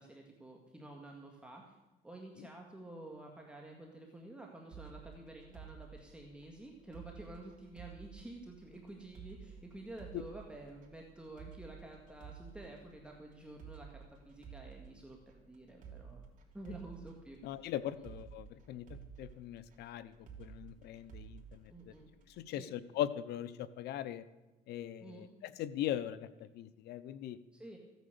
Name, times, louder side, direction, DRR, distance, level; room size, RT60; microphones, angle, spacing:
voice 1, 0.0-1.8 2.0-16.3 16.5-17.4 18.0-18.1 21.7-22.1 22.6-22.7 25.0-25.3 27.5-27.8, right 2 dB, 5° right, 0 dB, 1.8 m, -50 dB
sound 1, 4.7-22.5, right 7 dB, 50° right, 3.2 m, -54 dB
voice 2, 17.4-21.9 22.4-24.2 24.7-27.4, left 11 dB, 80° left, 16 dB, 0.7 m, -40 dB
15.5 x 9.3 x 6.8 m, 1.1 s
cardioid pair, 110°, 17 cm